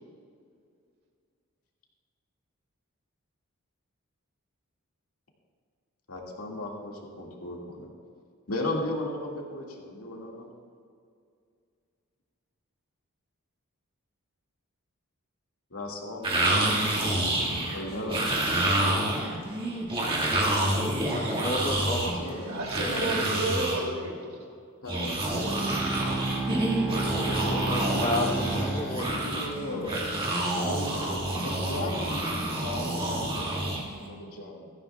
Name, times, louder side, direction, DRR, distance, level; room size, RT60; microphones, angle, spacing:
voice 1, 6.1-7.9 8.5-10.5 15.7-18.5 22.2-22.5 22.8-23.2 24.8-30.2 30.5-34.7, left 1 dB, 75° left, -1 dB, 2.1 m, -37 dB
sound 1, 16.2-23.8 24.9-34.1, right 1 dB, 25° right, 1.9 m, -28 dB
voice 2, 21.1-22.5 27.0-29.4 29.9-30.2 31.8-32.5, left 1 dB, 25° left, 3 dB, 1.0 m, -33 dB
voice 3, 22.4-24.5, right 2 dB, 70° right, -1 dB, 2.8 m, -32 dB
Bowed string instrument, 25.3-29.7, right 3 dB, ahead, 1.8 m, -32 dB
16.0 x 14.5 x 2.4 m, 2.3 s
head